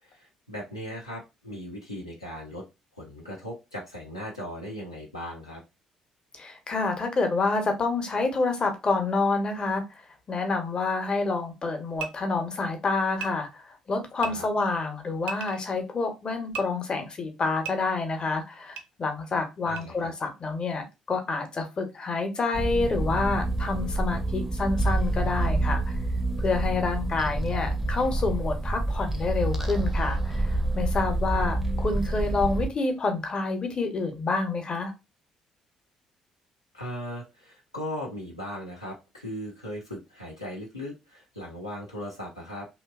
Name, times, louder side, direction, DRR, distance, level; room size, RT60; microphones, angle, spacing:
voice 1, 0.0-2.6 2.9-5.6 14.2-14.5 19.6-20.1 31.3-31.5 36.7-42.7, equal, 85° left, -4 dB, 0.6 m, -38 dB
voice 2, 6.4-9.8 10.3-25.9 26.4-34.9, left 3 dB, 35° left, 5 dB, 0.7 m, -28 dB
sound 1, 12.0-12.1 13.2-13.3 14.2-14.3 15.2-15.6 16.5-16.6 17.6-17.7 18.8-18.9 19.8-19.9, right 7 dB, 60° right, 0.4 m, -35 dB
sound 2, 22.5-32.7, right 2 dB, 10° right, 0.5 m, -27 dB
2.7 x 2.2 x 2.3 m, 0.24 s
figure-of-eight pair, 45°, 3 cm